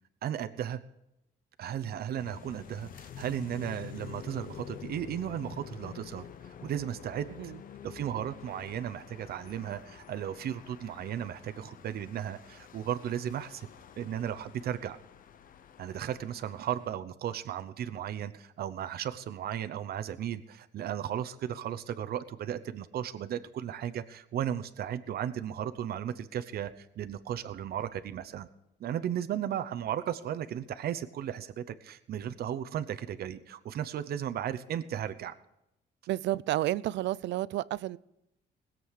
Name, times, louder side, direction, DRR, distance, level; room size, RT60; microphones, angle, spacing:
voice 1, 0.2-0.8 1.6-7.5 7.8-13.7 14.0-15.0 15.8-28.5 28.8-35.3, right 10 dB, 60° right, 0.8 m, -35 dB
sound 1, 2.2-17.0, left 9 dB, 50° left, 0.8 m, -48 dB
voice 2, 36.1-38.0, right 15 dB, 85° right, 0.5 m, -31 dB
20.0 x 7.7 x 6.4 m
cardioid pair, 145°, 18 cm